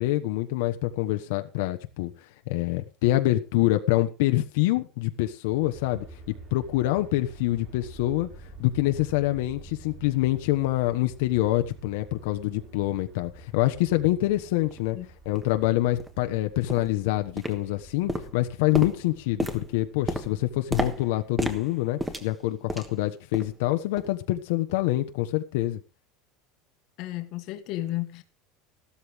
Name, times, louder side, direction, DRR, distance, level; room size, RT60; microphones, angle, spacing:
voice 1, 0.0-2.1 2.5-6.0 6.5-8.3 8.6-15.0 15.2-25.8, left 16 dB, 70° left, 1.2 m, -26 dB
Aircraft, 5.5-21.6, right 4 dB, 30° right, 3.9 m, -50 dB
sound 1, 7.5-12.7, right 2 dB, 50° right, 3.5 m, -49 dB
sound 2, 14.7-14.8 15.4-15.5 16.0-16.2 16.7-17.0 17.4-17.8 18.1-23.0 23.3-23.6 24.0-24.2 24.7-24.8, right 1 dB, 5° right, 1.4 m, -33 dB
voice 2, 27.0-28.2, left 15 dB, 45° left, 1.5 m, -33 dB
15.0 x 13.0 x 3.6 m
cardioid pair, 170°, 0 cm